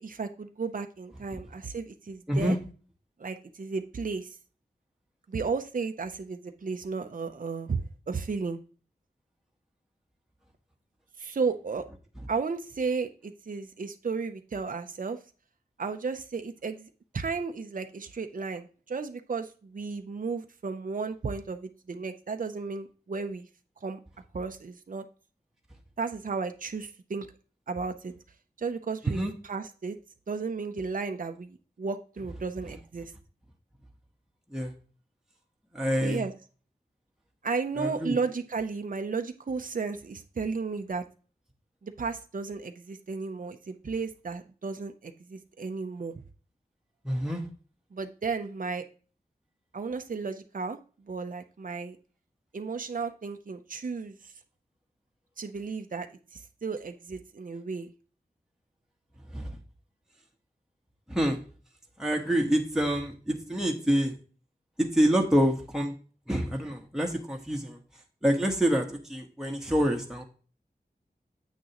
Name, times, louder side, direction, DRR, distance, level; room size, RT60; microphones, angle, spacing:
voice 1, 0.0-2.6 3.2-4.4 5.3-7.8 8.1-8.6 11.2-11.9 12.3-15.2 15.8-23.5 23.8-24.0 24.3-25.0 26.0-27.3 27.7-28.1 28.6-30.0 30.3-33.1 36.0-36.3 37.4-41.0 41.8-46.1 47.9-48.8 49.7-50.8 51.1-52.0 52.5-54.3 55.4-56.1 56.3-57.9, right 4 dB, 55° right, 7 dB, 0.6 m, -34 dB
voice 2, 35.7-36.2 37.8-38.1 47.0-47.4 59.3-59.6 61.1-61.4 62.0-64.1 64.8-65.9 66.3-67.8 68.2-70.2, equal, 5° right, 1 dB, 1.2 m, -27 dB
8.2 x 6.2 x 3.0 m, 0.38 s
wide cardioid pair, 50°, 17 cm